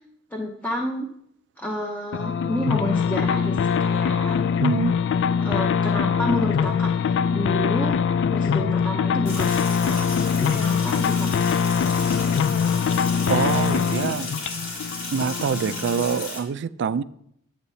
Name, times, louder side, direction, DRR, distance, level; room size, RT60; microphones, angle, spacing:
voice 1, 0.3-1.1 1.6-4.4 5.4-7.9 8.3-11.5, equal, 10° left, 0.6 m, -30 dB
sound 1, 2.1-16.2, left 6 dB, 60° left, 0.3 m, -23 dB
voice 2, 4.6-5.0 13.3-14.3 15.1-17.0, right 6 dB, 55° right, 0.3 m, -25 dB
Sink (filling or washing), 9.3-16.4, left 2 dB, 75° left, 3.0 m, -34 dB
9.8 x 7.9 x 2.7 m
head